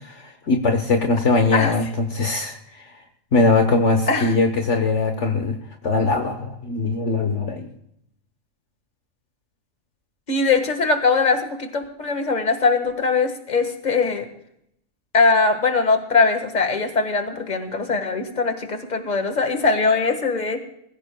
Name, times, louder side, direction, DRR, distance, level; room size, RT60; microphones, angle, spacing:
voice 1, 0.0-3.0 3.3-5.6 5.8-7.7, left 3 dB, 60° left, 5 dB, 1.4 m, -21 dB
voice 2, 10.3-14.3 15.1-20.6, left 4 dB, 30° left, 6 dB, 1.7 m, -21 dB
22.5 x 15.5 x 2.3 m, 0.76 s
omnidirectional pair, 1.5 m